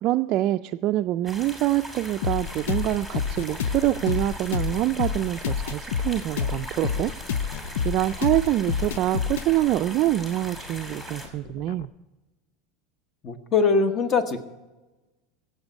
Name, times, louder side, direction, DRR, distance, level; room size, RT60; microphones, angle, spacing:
voice 1, 0.0-7.1 7.4-7.5 7.8-11.9, right 15 dB, 45° right, 6 dB, 0.3 m, -25 dB
sound 1, 1.3-11.3, equal, 10° left, 2.8 m, -40 dB
sound 2, 2.2-11.9, left 7 dB, 85° left, 0.5 m, -30 dB
voice 2, 13.2-14.4, left 4 dB, 30° left, 10 dB, 1.2 m, -22 dB
16.5 x 7.9 x 5.3 m, 1.1 s
supercardioid pair, 135°, 0 cm